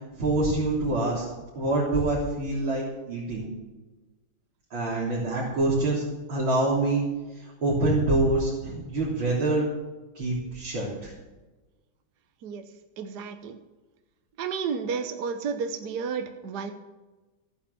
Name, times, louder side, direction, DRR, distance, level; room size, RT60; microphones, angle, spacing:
voice 1, 0.2-1.3 1.5-3.5 4.7-6.0 6.3-7.0 7.6-9.7 10.1-11.1, right 2 dB, 75° right, -7 dB, 4.4 m, -25 dB
voice 2, 13.0-13.6 14.4-16.7, right 6 dB, 60° right, 7 dB, 1.5 m, -31 dB
14.5 x 10.0 x 7.0 m, 1.2 s
omnidirectional pair, 2.2 m